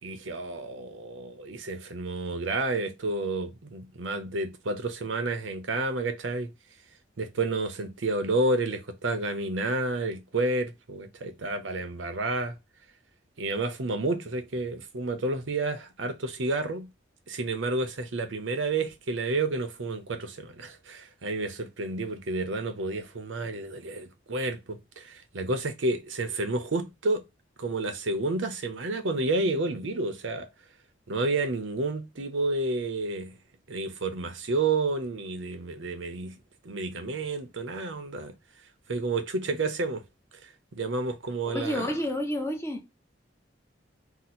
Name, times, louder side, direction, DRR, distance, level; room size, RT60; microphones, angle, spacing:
voice 1, 0.0-6.5 7.2-12.6 13.4-16.9 17.3-27.2 27.6-30.5 31.1-33.4 33.7-36.4 36.6-38.3 38.9-40.0 40.4-41.9, right 2 dB, 85° right, 0.7 m, -30 dB
voice 2, 41.5-42.8, left 1 dB, 15° left, 0.6 m, -30 dB
2.9 x 2.1 x 4.0 m
head